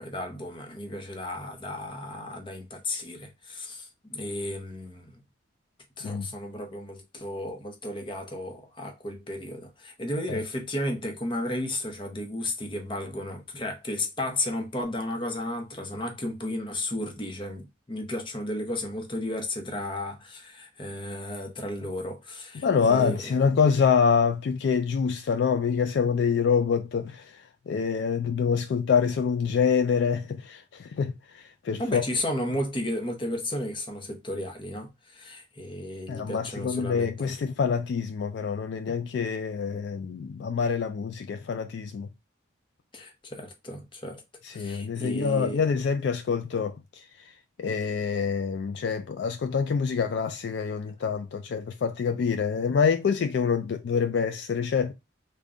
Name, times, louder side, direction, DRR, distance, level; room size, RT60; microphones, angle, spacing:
voice 1, 0.0-5.2 6.0-23.3 31.8-37.3 42.9-44.2 44.5-45.6, left 1 dB, 25° left, 0.7 m, -34 dB
voice 2, 22.6-27.2 27.7-32.0 36.1-42.1 44.4-46.7 47.6-54.9, left 6 dB, 60° left, 0.3 m, -26 dB
3.5 x 2.2 x 3.7 m
head